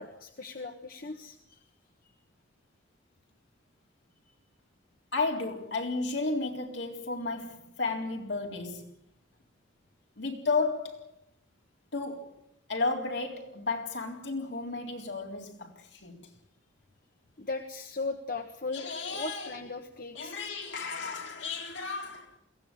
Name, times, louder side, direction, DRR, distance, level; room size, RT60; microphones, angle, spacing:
voice 1, 0.0-1.6 4.3-4.4 17.4-20.3, left 3 dB, 50° left, 1.5 m, -38 dB
voice 2, 5.1-8.9 10.2-11.1 11.9-12.4 12.7-16.3 18.7-19.5 20.2-22.3, left 3 dB, 75° left, 3.9 m, -33 dB
22.5 x 16.5 x 9.1 m
head